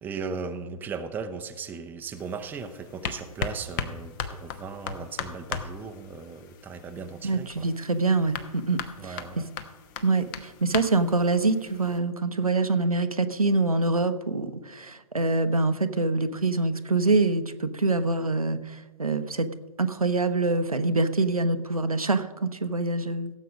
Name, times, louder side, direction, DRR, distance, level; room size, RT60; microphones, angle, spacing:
voice 1, 0.0-7.7 9.0-9.5, right 5 dB, 10° right, 7 dB, 0.7 m, -37 dB
sound 1, 2.2-12.0, left 7 dB, 35° left, 1.0 m, -38 dB
voice 2, 7.2-9.4 10.0-19.5 19.8-23.3, right 3 dB, 90° right, 8 dB, 0.9 m, -25 dB
16.5 x 7.6 x 5.1 m, 1.2 s
figure-of-eight pair, 120°, 18 cm